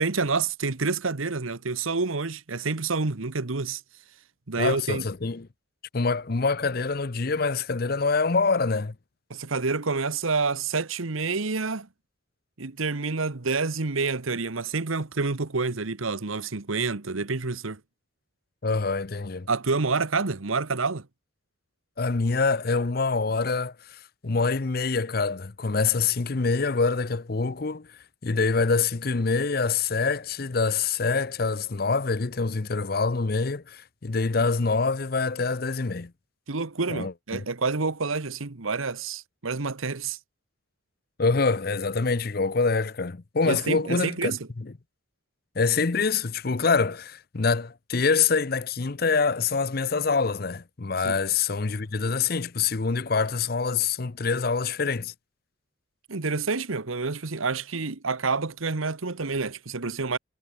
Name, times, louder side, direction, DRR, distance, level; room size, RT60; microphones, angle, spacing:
voice 1, 0.0-3.8 4.5-5.1 9.3-11.9 12.6-17.8 19.5-21.1 36.5-40.2 43.4-44.4 51.0-51.1 56.1-60.2, right 4 dB, 85° right, 1.3 m, -28 dB
voice 2, 4.6-5.5 5.9-8.9 18.6-19.5 22.0-27.9 28.2-36.1 36.9-37.4 41.2-44.7 45.6-55.1, left 4 dB, 45° left, 0.7 m, -25 dB
head